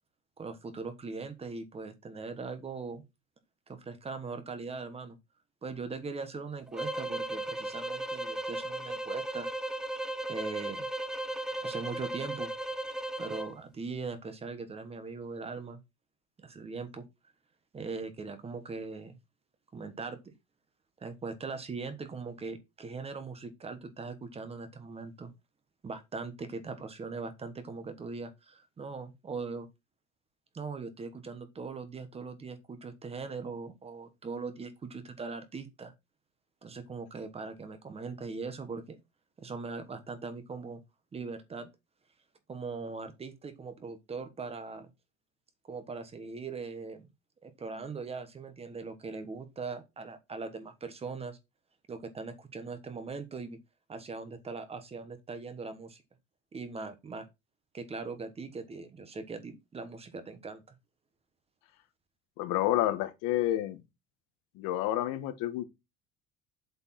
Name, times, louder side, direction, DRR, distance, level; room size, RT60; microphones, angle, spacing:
voice 1, 0.4-3.0 3.7-5.2 5.6-9.5 10.3-10.9 11.6-12.5 13.2-15.8 16.4-17.0 17.7-19.2 19.7-20.3 21.0-25.3 25.8-29.7 30.5-35.9 36.6-39.0 39.4-40.8 41.1-41.7 42.5-44.9 45.7-47.1 47.4-51.4 51.9-53.6 53.9-56.0 56.5-57.3 57.7-60.7, right 4 dB, 20° right, 1.2 m, -40 dB
sound 1, 6.7-13.5, right 1 dB, ahead, 0.5 m, -36 dB
voice 2, 62.4-63.8 64.6-65.6, left 14 dB, 90° left, 1.5 m, -29 dB
7.8 x 4.9 x 5.8 m
cardioid pair, 160°, 30 cm